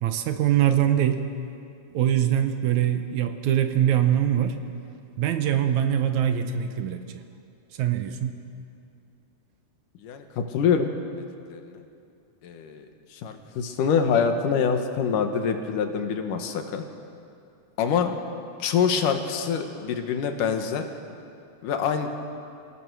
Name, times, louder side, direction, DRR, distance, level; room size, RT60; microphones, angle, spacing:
voice 1, 0.0-1.2 1.9-4.6 5.2-7.0 7.8-8.4, right 10 dB, 70° right, 7 dB, 2.2 m, -23 dB
voice 2, 10.0-10.9 11.5-11.8 12.4-16.8 17.8-18.2 18.6-20.8 21.6-22.1, left 6 dB, 80° left, 6 dB, 2.9 m, -25 dB
28.0 x 17.5 x 6.2 m, 2.5 s
omnidirectional pair, 3.7 m